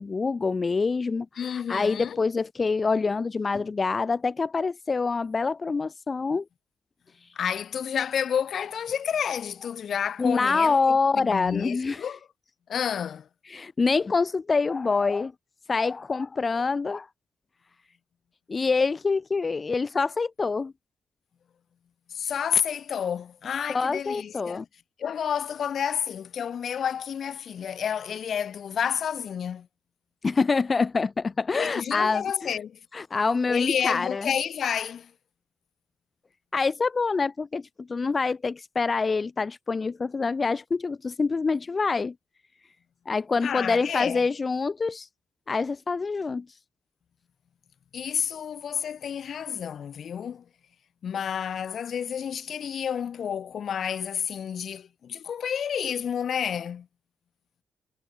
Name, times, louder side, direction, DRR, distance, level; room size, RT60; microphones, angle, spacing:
voice 1, 0.0-6.4 10.2-12.0 13.5-15.3 15.7-17.1 18.5-20.7 23.7-24.6 30.2-32.5 32.9-34.3 36.5-42.1 43.1-45.1 45.5-46.5, left 4 dB, 40° left, 1.1 m, -26 dB
voice 2, 1.4-2.2 7.3-12.2 12.7-13.3 22.1-24.6 25.0-29.7 31.5-32.8 33.5-35.1 43.4-44.2 47.9-50.4 51.0-56.9, left 8 dB, 65° left, 1.5 m, -30 dB
cardioid pair, 70°, 0 cm